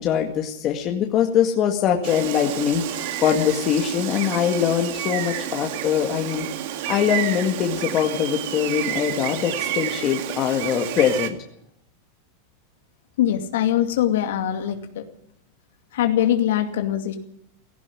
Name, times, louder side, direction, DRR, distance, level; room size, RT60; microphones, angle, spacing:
voice 1, 0.0-6.5 6.9-11.4, left 9 dB, 30° left, 2 dB, 2.0 m, -22 dB
Gull seagull, 2.0-11.3, right 12 dB, 60° right, 2.1 m, -30 dB
voice 2, 13.2-15.0 15.9-17.2, left 11 dB, 80° left, 5 dB, 2.4 m, -22 dB
17.0 x 15.5 x 9.9 m, 0.76 s
supercardioid pair, 155°, 0 cm